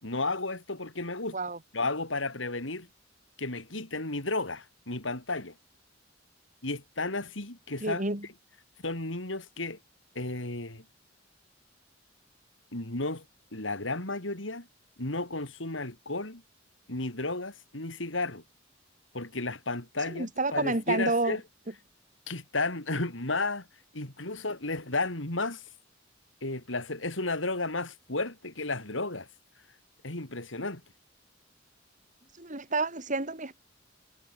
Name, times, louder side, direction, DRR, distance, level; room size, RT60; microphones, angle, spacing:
voice 1, 0.0-1.4 1.7-2.9 3.4-5.5 6.6-8.0 8.8-9.8 10.1-10.8 12.7-13.2 13.5-14.7 15.0-16.4 16.9-18.4 19.1-21.4 22.3-23.7 23.9-25.6 26.4-29.3 30.0-30.8, left 2 dB, 75° left, 4.7 m, -33 dB
voice 2, 7.8-8.3 20.1-21.4 32.4-33.6, right 2 dB, 40° right, 4.4 m, -29 dB
head